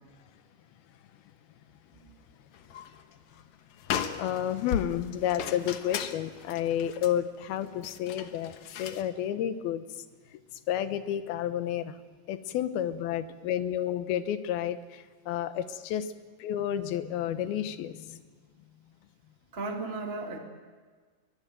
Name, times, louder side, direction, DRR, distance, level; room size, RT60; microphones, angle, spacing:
sound 1, 2.5-3.0 3.3-3.4 3.8-9.1, left 8 dB, 65° left, 2.0 m, -37 dB
voice 1, 4.2-9.8 10.3-10.4 10.7-12.0 12.3-16.1 16.4-18.2, left 10 dB, 80° left, 11 dB, 3.0 m, -31 dB
voice 2, 19.5-20.4, right 3 dB, 20° right, 2 dB, 1.8 m, -35 dB
23.0 x 20.5 x 9.1 m, 1.5 s
omnidirectional pair, 4.4 m